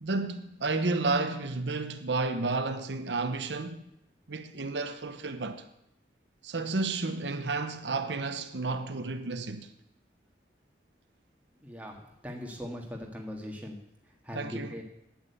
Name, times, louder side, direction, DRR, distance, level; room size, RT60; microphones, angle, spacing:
voice 1, 0.0-3.8 4.3-5.6 6.4-9.7 14.3-14.7, right 3 dB, 85° right, 0.9 m, -31 dB
voice 2, 11.6-12.0 12.2-13.8 14.2-14.8, equal, 10° right, 1.7 m, -39 dB
9.1 x 8.9 x 8.3 m
head